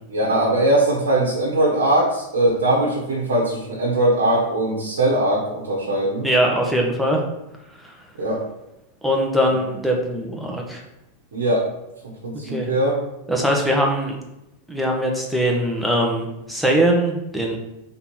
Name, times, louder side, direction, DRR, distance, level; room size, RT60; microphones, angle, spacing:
voice 1, 0.1-6.3 8.2-8.4 11.3-11.6 12.0-13.0, right 1 dB, 60° right, -3 dB, 1.4 m, -20 dB
voice 2, 6.2-7.2 7.8-7.9 9.0-10.8 12.4-12.7 13.3-14.2 14.7-17.6, equal, ahead, -1 dB, 1.3 m, -21 dB
5.6 x 3.9 x 4.5 m, 0.89 s
figure-of-eight pair, 90°, 0 cm